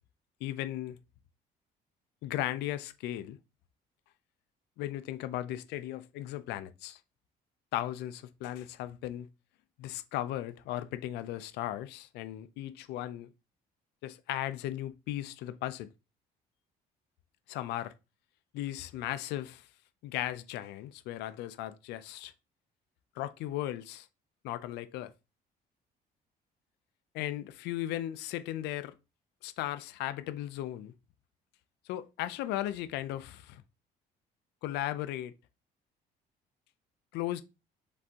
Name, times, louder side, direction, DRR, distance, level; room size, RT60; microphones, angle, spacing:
voice 1, 0.4-1.0 2.2-3.4 4.8-7.0 7.7-9.3 9.8-13.3 14.0-15.9 17.5-17.9 18.5-19.7 20.0-22.3 23.2-24.1 24.4-25.1 27.1-28.9 29.4-30.9 31.9-33.6 34.6-35.3 37.1-37.4, left 13 dB, 85° left, 0.5 m, -36 dB
5.1 x 3.4 x 2.8 m
cardioid pair, 110°, 17 cm